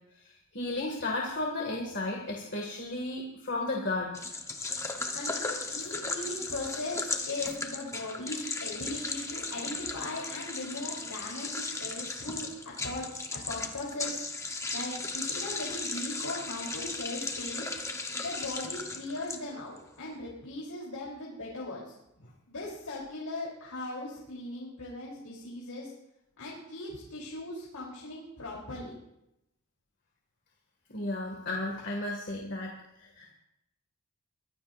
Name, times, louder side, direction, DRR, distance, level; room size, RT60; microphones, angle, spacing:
voice 1, 0.2-4.1 30.9-33.3, left 2 dB, 50° left, -1 dB, 2.2 m, -34 dB
sound 1, 4.1-19.8, left 3 dB, 15° left, 1.1 m, -36 dB
voice 2, 5.1-13.1 13.5-14.2 14.7-17.7 18.1-21.9 22.5-25.9 26.4-28.9, left 2 dB, 85° left, -5 dB, 3.7 m, -39 dB
23.5 x 15.0 x 2.6 m, 0.85 s
head